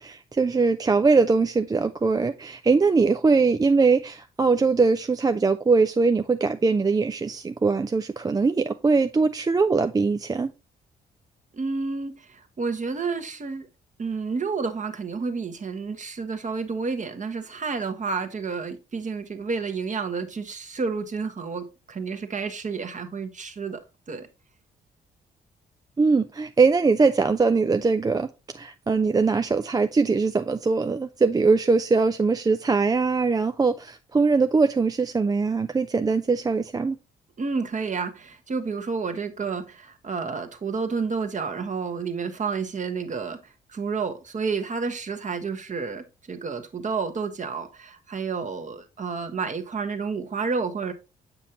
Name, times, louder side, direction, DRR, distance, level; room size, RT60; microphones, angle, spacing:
voice 1, 0.0-10.5 26.0-37.0, right 4 dB, 20° right, 0.4 m, -22 dB
voice 2, 11.5-13.7 14.0-23.8 24.1-24.3 37.4-50.9, right 5 dB, 40° right, 1.2 m, -30 dB
7.5 x 5.3 x 2.9 m
hypercardioid pair, 45°, 20 cm